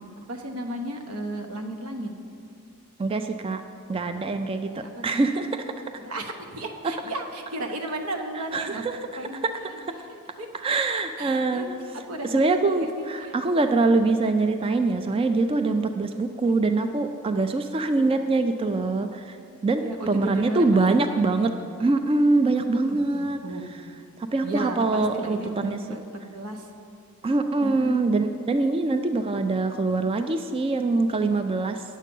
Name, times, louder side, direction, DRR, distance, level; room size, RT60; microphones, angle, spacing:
voice 1, 0.3-2.1 4.6-5.2 6.0-8.9 9.2-9.8 10.1-10.5 11.2-11.7 12.1-13.3 16.4-16.7 18.0-18.2 19.8-21.6 22.7-23.7 24.4-26.0 26.3-26.7 27.6-27.9, right 1 dB, 90° right, 4 dB, 1.0 m, -34 dB
voice 2, 3.0-3.6 3.9-5.6 8.5-8.9 9.4-9.5 9.8-9.9 10.6-11.6 12.3-19.4 19.6-21.5 21.8-23.4 24.3-25.8 27.2-31.8, right 3 dB, 25° right, 7 dB, 0.3 m, -24 dB
9.5 x 7.4 x 5.3 m, 2.5 s
head